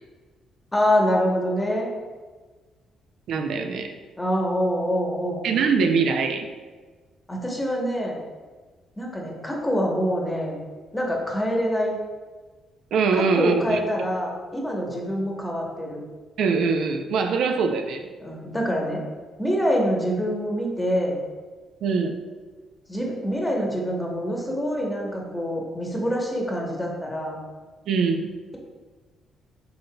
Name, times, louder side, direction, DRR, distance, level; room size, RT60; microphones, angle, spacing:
voice 1, 0.7-1.9 4.2-5.4 7.3-8.2 9.0-10.6 10.9-12.0 13.1-16.0 18.2-19.0 19.4-21.2 22.9-27.4, equal, 15° left, -1 dB, 0.9 m, -25 dB
voice 2, 3.3-3.9 5.4-6.5 12.9-13.8 16.4-18.1 21.8-22.2 27.9-28.3, right 5 dB, 75° right, 5 dB, 0.4 m, -23 dB
5.6 x 3.9 x 2.2 m, 1.4 s
cardioid pair, 90°, 0 cm